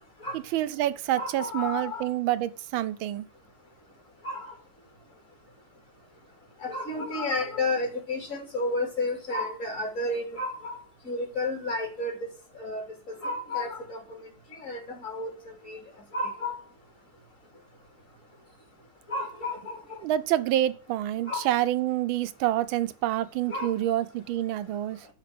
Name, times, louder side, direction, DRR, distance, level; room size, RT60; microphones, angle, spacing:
voice 1, 0.3-3.3 20.0-25.1, right 13 dB, 75° right, 1.5 m, -27 dB
voice 2, 1.1-2.1 4.2-4.5 6.6-10.8 11.1-12.1 12.6-12.8 13.2-14.3 14.6-15.8 16.1-16.6 19.1-20.0 21.3-21.5 23.5-23.7, left 2 dB, 40° left, 3.7 m, -31 dB
12.0 x 5.2 x 7.8 m
omnidirectional pair, 2.2 m